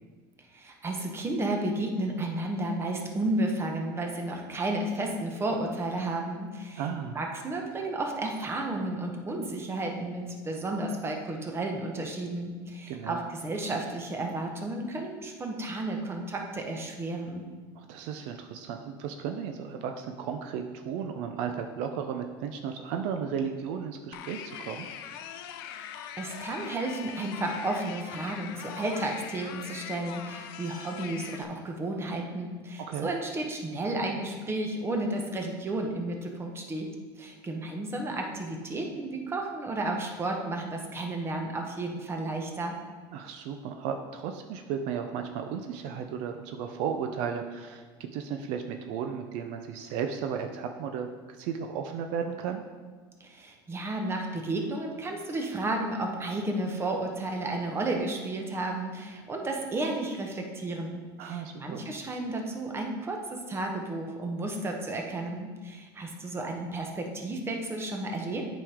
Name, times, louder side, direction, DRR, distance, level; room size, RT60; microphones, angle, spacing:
voice 1, 0.5-6.8 7.1-17.4 25.8-36.9 37.2-42.7 53.2-68.5, right 2 dB, 20° right, 2 dB, 1.1 m, -32 dB
voice 2, 6.8-7.2 12.9-13.2 17.7-24.9 32.9-33.1 43.1-52.6 61.2-61.9, right 7 dB, 65° right, 5 dB, 0.5 m, -34 dB
sound 1, 24.1-31.4, left 9 dB, 85° left, 0.5 m, -42 dB
8.5 x 5.2 x 3.6 m, 1.4 s
supercardioid pair, 120°, 12 cm